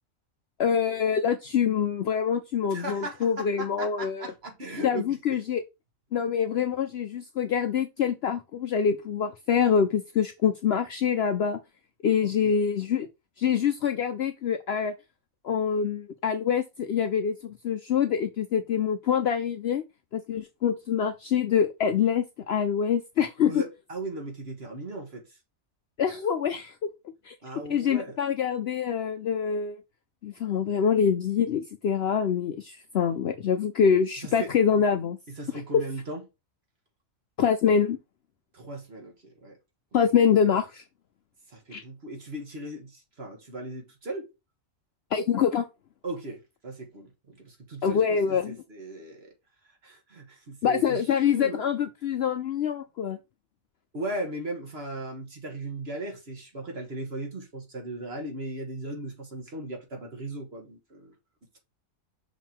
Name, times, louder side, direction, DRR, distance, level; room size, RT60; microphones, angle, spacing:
voice 1, 0.6-4.3 4.8-5.6 6.1-11.6 12.0-13.1 13.4-14.9 15.4-19.8 20.1-23.6 26.0-26.7 27.3-27.4 27.7-29.8 30.2-35.2 35.7-35.8 37.4-38.0 39.9-40.8 41.7-41.8 45.1-45.6 47.8-48.6 50.6-53.2, left 7 dB, 65° left, 0.7 m, -25 dB
voice 2, 2.7-5.4 12.2-12.6 23.4-25.2 27.4-28.2 34.2-34.5 35.3-36.2 38.5-39.6 39.9-40.0 41.5-44.3 46.0-49.3 49.6-51.6 53.9-61.1, right 2 dB, 45° right, 2.0 m, -37 dB
5.9 x 3.7 x 4.5 m
omnidirectional pair, 1.4 m